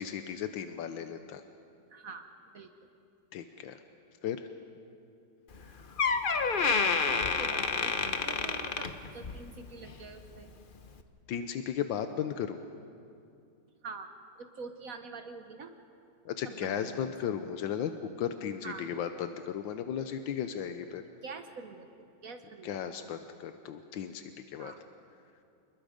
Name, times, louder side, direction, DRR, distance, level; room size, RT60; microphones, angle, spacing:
voice 1, 0.0-1.4 3.3-3.8 4.2-4.5 11.3-12.6 16.2-21.0 22.6-24.7, left 8 dB, 85° left, 8 dB, 1.5 m, -35 dB
voice 2, 1.9-2.7 7.0-10.5 13.8-14.1 14.4-15.7 16.4-17.1 18.6-18.9 21.2-23.0 24.6-24.8, right 4 dB, 55° right, 7 dB, 1.3 m, -46 dB
Door, 5.5-5.6 6.0-9.5 9.8-10.1 10.8-10.9, left 5 dB, 45° left, 0.7 m, -29 dB
28.5 x 20.5 x 5.1 m, 2.5 s
omnidirectional pair, 2.0 m